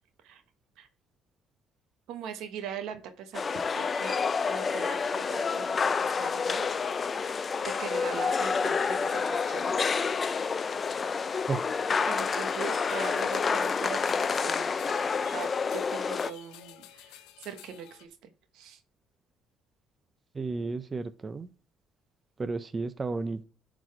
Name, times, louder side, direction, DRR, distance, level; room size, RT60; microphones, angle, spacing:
voice 1, 2.1-3.5 3.7-4.2 4.4-6.7 7.2-7.4 7.6-9.8 12.0-14.7 15.3-18.8, right 7 dB, 75° right, 1.1 m, -41 dB
sound 1, 3.3-16.3, left 5 dB, 35° left, 0.4 m, -29 dB
sound 2, 12.3-18.1, left 12 dB, 85° left, 0.6 m, -50 dB
voice 2, 20.3-21.5 22.4-23.4, right 4 dB, 25° right, 0.5 m, -32 dB
10.5 x 4.1 x 4.6 m
cardioid pair, 100°, 0 cm